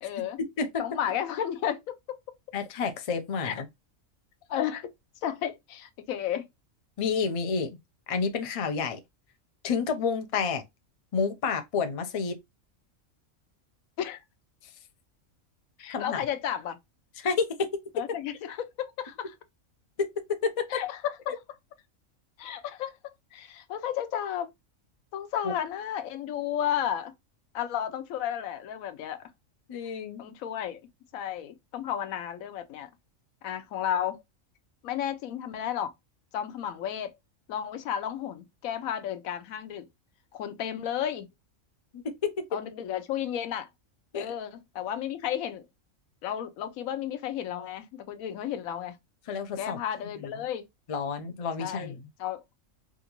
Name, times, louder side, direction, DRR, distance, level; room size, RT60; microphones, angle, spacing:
voice 1, 0.0-0.4 0.8-2.2 3.4-3.5 4.5-4.9 5.2-6.5 14.0-14.2 15.8-16.8 17.9-19.3 20.7-21.2 22.4-24.5 25.1-27.1 27.5-29.2 30.2-30.8 31.1-32.9 33.4-34.2 34.8-35.9 36.3-37.1 37.5-39.9 40.3-41.3 42.5-43.7 44.1-45.7 46.2-49.0 49.6-50.7 51.6-52.4, left 10 dB, 85° left, 1.0 m, -33 dB
voice 2, 2.5-3.7 7.0-7.8 8.1-9.0 9.6-10.6 11.1-12.4 15.9-16.2 17.2-17.8 20.0-20.8 25.4-25.5 29.7-30.2 41.9-42.4 44.1-44.3 49.3-49.8 50.2-50.3 50.9-52.0, left 5 dB, 50° left, 0.4 m, -29 dB
3.6 x 2.5 x 2.8 m
omnidirectional pair, 1.4 m